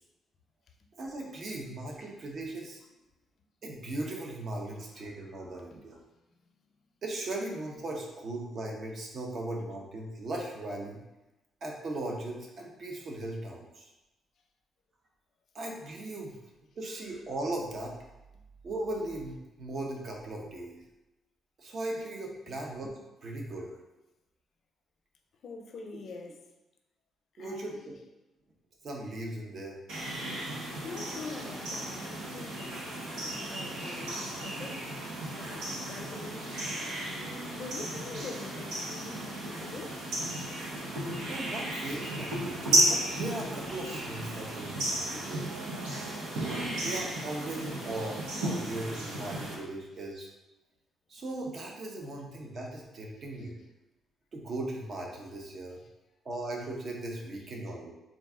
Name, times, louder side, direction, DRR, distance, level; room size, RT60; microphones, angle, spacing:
voice 1, 0.9-2.8 3.6-6.0 7.0-11.0 11.6-13.9 15.5-16.4 16.8-17.9 18.6-20.8 21.6-23.7 27.4-27.9 28.8-29.8 41.3-45.7 46.4-50.3 51.1-53.6 54.3-55.8 56.2-57.9, right 2 dB, 50° right, 0 dB, 0.8 m, -38 dB
voice 2, 25.4-26.4 27.3-27.8 30.3-30.6 30.8-34.9 35.3-36.6 37.1-40.0 46.0-46.3 53.4-53.5, left 3 dB, 60° left, 3 dB, 0.5 m, -44 dB
sound 1, 29.9-49.5, right 1 dB, 90° right, 0.8 m, -34 dB
4.0 x 2.4 x 3.6 m, 1.0 s
cardioid pair, 90°, 0 cm